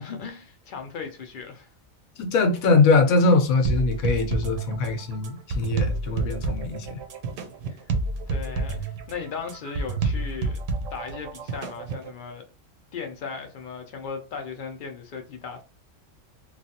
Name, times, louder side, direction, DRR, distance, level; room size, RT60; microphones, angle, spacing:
voice 1, 0.0-1.7 7.7-7.8 8.3-10.6 10.9-12.4 12.9-15.6, left 5 dB, 65° left, 0.5 m, -37 dB
voice 2, 2.2-7.0, left 3 dB, 90° left, 1.1 m, -22 dB
sound 1, 3.6-12.1, right 3 dB, 70° right, 0.9 m, -29 dB
3.1 x 2.3 x 2.7 m
omnidirectional pair, 1.4 m